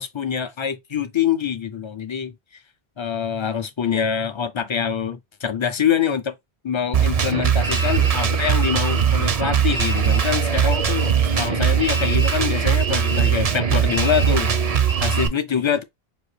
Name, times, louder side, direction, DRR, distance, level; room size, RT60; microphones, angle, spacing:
voice 1, 0.0-2.3 3.0-6.3 6.6-14.5 15.0-15.8, left 7 dB, 40° left, 0.4 m, -25 dB
Drum kit, 6.9-15.3, right 7 dB, 45° right, 0.6 m, -20 dB
5.2 x 2.6 x 3.2 m
omnidirectional pair, 1.0 m